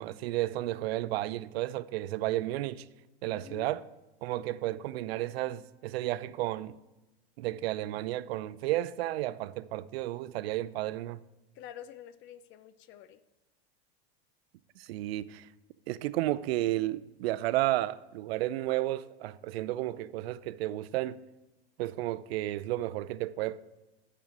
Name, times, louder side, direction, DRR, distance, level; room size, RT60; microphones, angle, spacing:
voice 1, 0.0-2.9 3.2-3.8 4.2-6.8 7.4-11.2 14.8-15.5 15.9-21.2 21.8-23.6, right 15 dB, 75° right, 0.5 m, -32 dB
voice 2, 3.2-3.8 11.5-13.2, left 10 dB, 40° left, 0.5 m, -48 dB
6.8 x 6.2 x 5.9 m
supercardioid pair, 120°, 31 cm